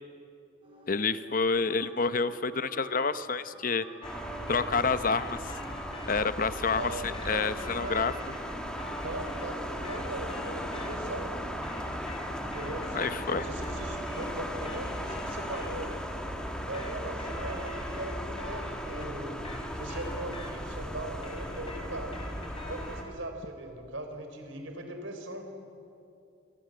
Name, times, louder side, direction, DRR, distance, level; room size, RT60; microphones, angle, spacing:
sound 1, 0.6-9.8, right 2 dB, 25° right, 6.3 m, -50 dB
voice 1, 0.9-3.8 4.5-5.5 6.1-6.9 7.3-8.1 12.9-13.5, left 4 dB, 45° left, 12 dB, 0.8 m, -28 dB
sound 2, 4.0-6.1 6.8-11.2 11.5-15.7 16.4-20.8 21.1-23.2, equal, 30° left, 5.1 m, -45 dB
sound 3, 4.0-23.0, equal, 5° left, 2.3 m, -37 dB
voice 2, 6.8-8.1 9.0-11.3 12.4-15.9 16.6-22.2 22.7-25.5, right 1 dB, 80° right, 5 dB, 4.1 m, -40 dB
27.0 x 25.5 x 7.8 m, 2.6 s
head